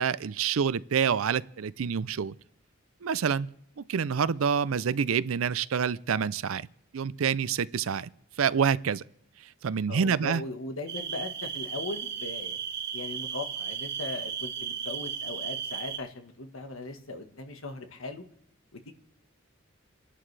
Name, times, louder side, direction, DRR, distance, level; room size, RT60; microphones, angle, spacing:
voice 1, 0.0-2.4 3.0-3.5 3.9-6.7 6.9-8.1 8.4-9.0 9.6-10.4, right 7 dB, 80° right, 0.5 m, -27 dB
voice 2, 9.9-12.6 12.9-18.2 18.7-18.9, left 2 dB, 75° left, 1.4 m, -38 dB
sound 1, 10.9-16.0, right 7 dB, 55° right, 1.2 m, -35 dB
28.5 x 11.0 x 3.3 m
head